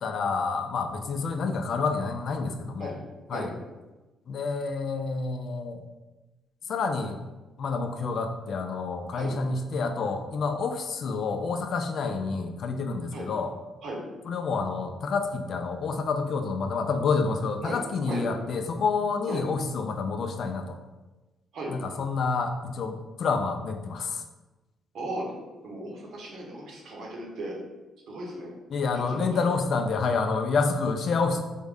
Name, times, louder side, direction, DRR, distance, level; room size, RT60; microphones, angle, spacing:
voice 1, 0.0-3.0 3.3-3.5 4.3-5.8 6.7-7.2 7.6-13.5 14.2-20.8 21.7-24.2 28.7-31.4, left 4 dB, 60° left, 6 dB, 0.4 m, -28 dB
voice 2, 24.9-25.3 25.6-27.5 28.1-28.5 28.9-29.5, right 2 dB, 70° right, -2 dB, 0.9 m, -36 dB
3.6 x 2.1 x 3.4 m, 1.1 s
cardioid pair, 90°, 0 cm